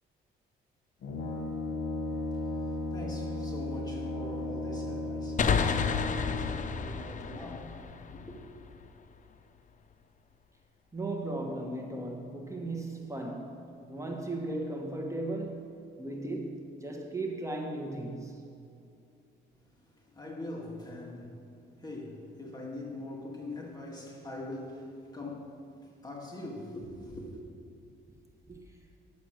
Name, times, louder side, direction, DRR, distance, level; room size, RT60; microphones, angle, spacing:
Brass instrument, 1.0-6.8, left 2 dB, 70° left, 1.3 m, -35 dB
voice 1, 2.1-8.4 19.7-27.4, left 2 dB, 20° left, -2 dB, 2.0 m, -43 dB
sound 1, 5.4-8.9, left 6 dB, 40° left, 0.6 m, -31 dB
voice 2, 10.9-13.6 13.9-15.7 16.0-18.4 28.5-28.6, right 2 dB, 15° right, 1 dB, 1.3 m, -36 dB
10.0 x 7.1 x 6.4 m, 2.5 s
cardioid pair, 90°, 20 cm